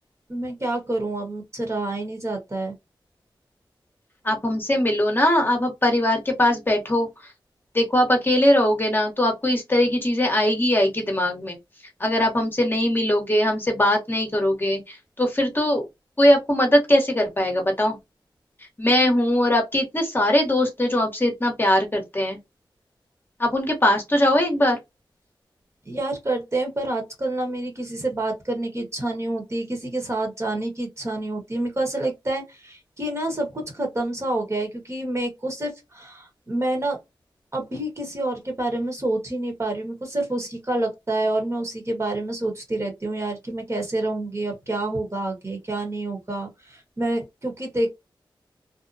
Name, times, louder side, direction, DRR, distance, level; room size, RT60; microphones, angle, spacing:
voice 1, 0.3-2.8 25.8-37.0 37.5-47.9, right 2 dB, 35° right, 1.1 m, -28 dB
voice 2, 4.2-7.1 7.7-11.6 12.0-15.9 16.2-18.0 18.8-22.4 23.4-24.8, left 1 dB, 25° left, 0.9 m, -21 dB
2.7 x 2.1 x 2.5 m
wide cardioid pair, 85°, 8 cm